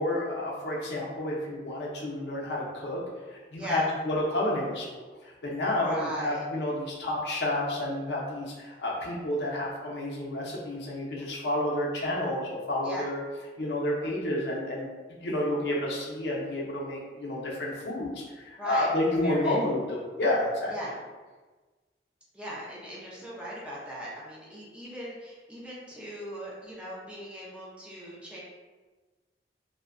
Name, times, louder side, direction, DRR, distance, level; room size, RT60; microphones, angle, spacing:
voice 1, 0.0-3.0 3.3-13.2 13.6-14.9 15.2-20.7, left 1 dB, 70° left, -4 dB, 0.6 m, -30 dB
voice 2, 5.7-6.4 11.2-11.5 12.8-13.1 18.6-19.6 20.7-20.9 22.3-28.4, equal, 5° right, -7 dB, 0.5 m, -39 dB
2.6 x 2.1 x 2.4 m, 1.3 s
head